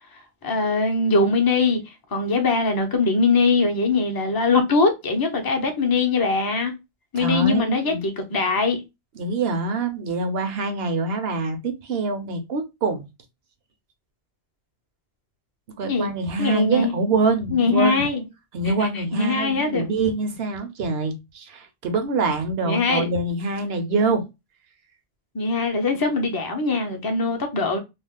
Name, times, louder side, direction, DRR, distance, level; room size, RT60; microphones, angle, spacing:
voice 1, 0.4-6.7 7.1-8.8 15.9-16.1 16.4-17.1 17.5-18.2 18.6-19.9 22.6-23.1 25.3-27.8, left 3 dB, 30° left, 0.5 m, -22 dB
voice 2, 7.2-8.0 9.2-13.0 15.8-18.1 18.5-24.2, right 3 dB, 65° right, 0.9 m, -25 dB
2.5 x 2.3 x 3.4 m
omnidirectional pair, 1.2 m